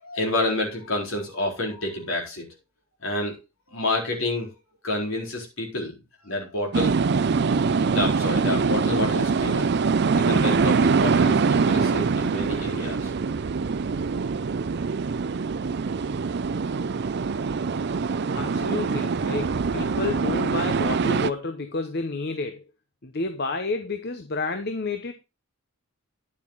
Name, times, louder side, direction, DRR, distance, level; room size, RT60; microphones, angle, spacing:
voice 1, 0.0-2.5 3.0-3.4 3.7-4.5 4.8-6.0 6.2-7.0 7.9-9.9 10.2-13.1, left 2 dB, 60° left, 0 dB, 4.1 m, -29 dB
sound 1, 6.7-21.3, right 5 dB, 50° right, 0.4 m, -24 dB
voice 2, 18.3-22.6 23.0-25.1, left 3 dB, 45° left, 7 dB, 0.9 m, -30 dB
10.0 x 7.4 x 3.9 m, 0.27 s
head